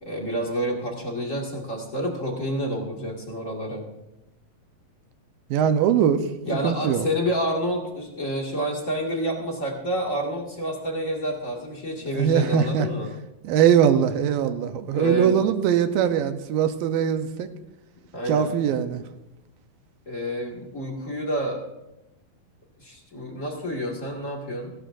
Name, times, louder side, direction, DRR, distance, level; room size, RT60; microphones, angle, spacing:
voice 1, 0.0-3.9 6.5-13.1 14.9-15.4 18.1-18.5 20.1-21.6 22.8-24.7, equal, 30° left, -1 dB, 1.6 m, -29 dB
voice 2, 5.5-6.2 6.6-7.1 12.1-12.9 13.4-17.5 18.3-19.0, right 8 dB, 80° right, 9 dB, 2.4 m, -21 dB
18.0 x 16.5 x 2.6 m, 0.93 s
omnidirectional pair, 4.2 m